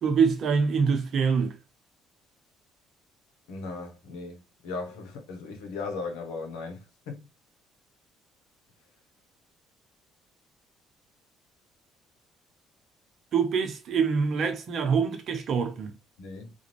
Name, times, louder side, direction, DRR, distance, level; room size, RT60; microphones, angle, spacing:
voice 1, 0.0-1.6 13.3-15.9, right 6 dB, 60° right, 0.6 m, -25 dB
voice 2, 3.5-6.8 7.1-7.2 16.2-16.5, left 4 dB, 80° left, 0.7 m, -37 dB
2.5 x 2.2 x 3.0 m
hypercardioid pair, 60°, 0 cm